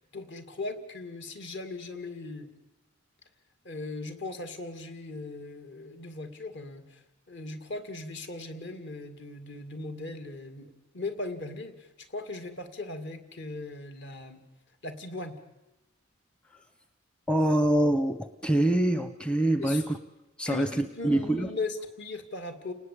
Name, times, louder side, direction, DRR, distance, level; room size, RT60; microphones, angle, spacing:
voice 1, 0.0-2.5 3.6-7.0 7.3-14.4 14.8-15.4 19.6-19.8 20.5-22.7, left 2 dB, 55° left, 8 dB, 2.5 m, -38 dB
voice 2, 17.3-20.0 20.4-21.5, right 1 dB, 5° left, 10 dB, 0.8 m, -25 dB
30.0 x 19.0 x 8.5 m, 1.0 s
head